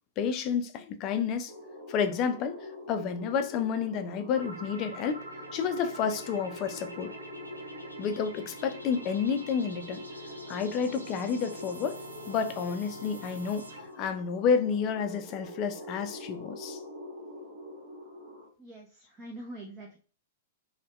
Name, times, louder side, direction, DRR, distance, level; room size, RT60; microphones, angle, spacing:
voice 1, 0.2-1.5 1.9-5.2 5.5-7.1 8.0-10.0 10.5-12.0 12.3-13.7 14.0-16.8, left 6 dB, 35° left, 0.3 m, -30 dB
sound 1, 1.5-18.5, left 1 dB, 45° right, 1.1 m, -45 dB
sound 2, 4.3-14.0, right 1 dB, 85° right, 0.5 m, -46 dB
voice 2, 18.6-20.0, right 1 dB, 20° right, 0.5 m, -44 dB
2.6 x 2.1 x 2.2 m
figure-of-eight pair, 105°, 0 cm